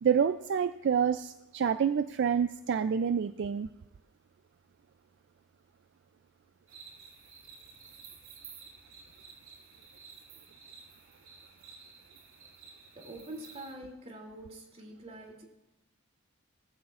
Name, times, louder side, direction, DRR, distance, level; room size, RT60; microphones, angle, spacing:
voice 1, 0.0-3.7, right 7 dB, 55° right, 12 dB, 0.3 m, -28 dB
sound 1, 6.7-13.7, right 5 dB, 80° right, 3.2 m, -53 dB
voice 2, 12.9-15.5, right 1 dB, 30° right, 0 dB, 2.8 m, -45 dB
19.0 x 14.5 x 2.5 m, 0.97 s
head